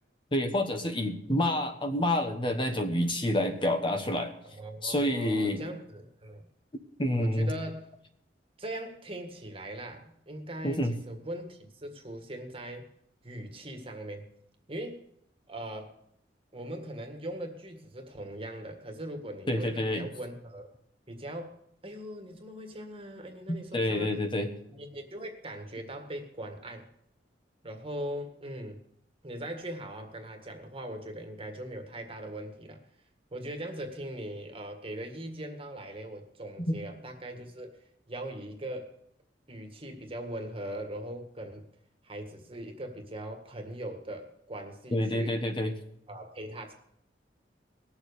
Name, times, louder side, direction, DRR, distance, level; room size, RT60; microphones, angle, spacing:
voice 1, 0.3-4.3 4.8-5.6 7.0-7.5 10.6-10.9 19.5-20.1 23.5-24.5 44.9-45.7, left 1 dB, 30° left, 5 dB, 1.3 m, -28 dB
voice 2, 4.5-6.5 7.2-7.9 8.6-12.9 13.2-14.3 14.7-15.0 15.5-15.9 16.5-20.7 21.1-21.6 21.8-24.2 24.7-26.9 27.6-28.8 29.2-32.8 33.3-37.7 38.1-38.9 39.5-41.6 42.0-45.4 46.1-46.7, right 1 dB, 30° right, 4 dB, 1.9 m, -40 dB
19.0 x 7.2 x 6.8 m, 0.74 s
head